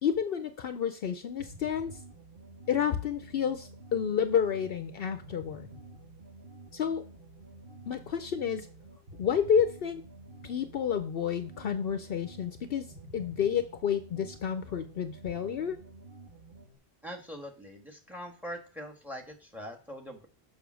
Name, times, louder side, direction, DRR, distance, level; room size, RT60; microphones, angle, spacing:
voice 1, 0.0-2.0 2.7-5.7 6.7-7.0 7.9-8.7 9.2-10.0 10.4-12.9 13.1-15.8, left 8 dB, 65° left, 10 dB, 0.8 m, -30 dB
sound 1, 1.4-16.8, right 2 dB, 55° right, 1.6 m, -50 dB
voice 2, 17.0-20.3, equal, ahead, 5 dB, 1.5 m, -42 dB
6.9 x 5.9 x 6.2 m, 0.40 s
omnidirectional pair, 1.1 m